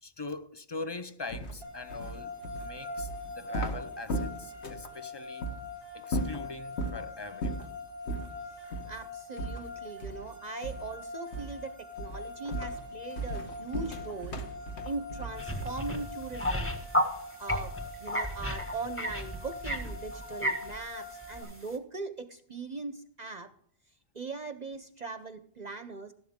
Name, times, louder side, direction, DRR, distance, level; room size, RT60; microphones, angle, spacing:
voice 1, 0.0-2.3 2.6-5.5 5.9-7.8, left 3 dB, 35° left, 0.4 m, -42 dB
sound 1, 1.3-4.9 5.4-5.6 6.0-7.0 7.4-7.7 8.1-8.3 8.7-8.9 9.4-10.3 10.6-11.0 11.3-11.6 12.0-15.9, right 1 dB, 70° left, 1.6 m, -36 dB
sound 2, 1.6-21.4, left 3 dB, 85° left, 4.4 m, -43 dB
voice 2, 8.9-14.4 14.8-16.7 17.4-17.7 18.0-23.5 24.1-26.1, right 3 dB, 45° right, 0.7 m, -40 dB
sound 3, 15.4-17.1 17.5-20.8 21.2-21.5, equal, 10° left, 1.5 m, -32 dB
13.5 x 11.5 x 3.6 m
omnidirectional pair, 1.2 m